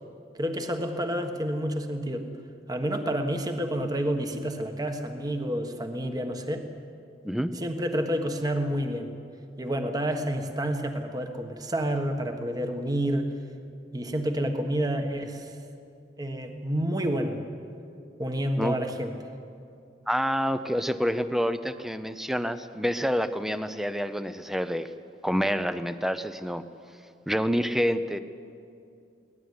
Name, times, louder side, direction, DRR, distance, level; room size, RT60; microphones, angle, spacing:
voice 1, 0.4-2.3 2.7-6.7 7.5-9.1 9.6-13.3 13.9-15.5 16.2-17.4 18.2-19.1, right 1 dB, 20° right, 5 dB, 1.5 m, -29 dB
voice 2, 20.1-24.9 25.2-26.6 27.3-28.2, equal, ahead, 11 dB, 0.7 m, -27 dB
23.5 x 18.0 x 9.7 m, 2.5 s
head